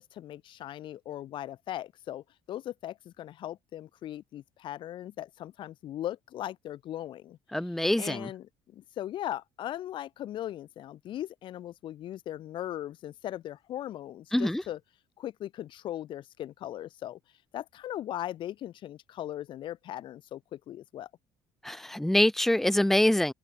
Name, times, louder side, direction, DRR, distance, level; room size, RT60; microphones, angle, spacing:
voice 1, 0.0-7.4 8.0-14.8 15.2-17.2 17.5-21.1, left 12 dB, 50° left, 1.7 m, -39 dB
voice 2, 7.5-8.3 14.3-14.6 21.6-23.3, left 1 dB, 5° left, 0.6 m, -25 dB
cardioid pair, 155°, 11 cm